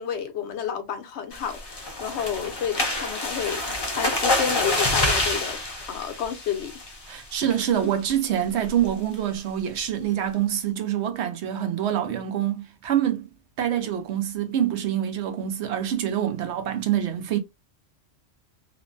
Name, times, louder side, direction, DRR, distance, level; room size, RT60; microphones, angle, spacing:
voice 1, 0.0-3.6 3.9-5.6 5.9-6.7, left 8 dB, 75° left, 1.0 m, -30 dB
sound 1, 1.3-7.1 7.5-7.8 8.1-8.2 8.6-8.9, left 2 dB, 30° left, 0.5 m, -27 dB
voice 2, 7.1-13.3 13.6-17.4, right 10 dB, 75° right, 0.9 m, -26 dB
3.0 x 2.1 x 2.4 m
omnidirectional pair, 1.2 m